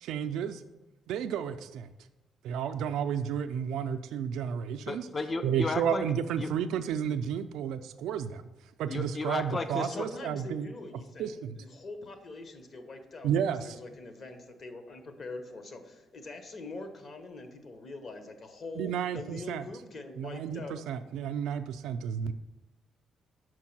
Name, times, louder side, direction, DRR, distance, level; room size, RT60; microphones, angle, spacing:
voice 1, 0.0-0.6 1.1-1.9 2.4-5.1 5.4-8.4 8.8-10.7 11.2-11.6 13.2-13.8 18.8-19.6 20.2-22.3, right 8 dB, 85° right, 7 dB, 0.3 m, -32 dB
voice 2, 4.9-6.0 6.4-6.5 8.9-10.1, left 3 dB, 30° left, 9 dB, 0.4 m, -33 dB
voice 3, 9.5-20.9, left 3 dB, 50° left, 7 dB, 1.0 m, -44 dB
6.2 x 4.6 x 5.9 m, 1.0 s
cardioid pair, 90°, 0 cm